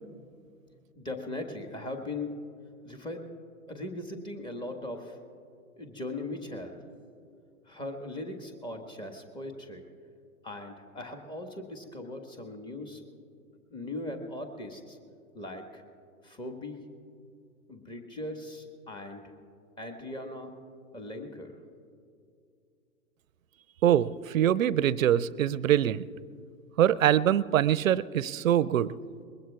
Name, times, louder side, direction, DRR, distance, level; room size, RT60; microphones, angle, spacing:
voice 1, 0.9-2.4 2.8-3.2 3.7-5.2 5.8-6.8 7.6-9.8 10.4-13.0 13.7-15.0 15.3-15.8 16.2-16.9 17.7-19.2 19.8-20.5 20.9-21.5, left 2 dB, 10° left, 5 dB, 1.5 m, -39 dB
voice 2, 23.8-26.1 26.8-28.9, right 11 dB, 65° right, 19 dB, 0.6 m, -24 dB
24.0 x 21.5 x 2.4 m, 2.4 s
figure-of-eight pair, 105°, 43 cm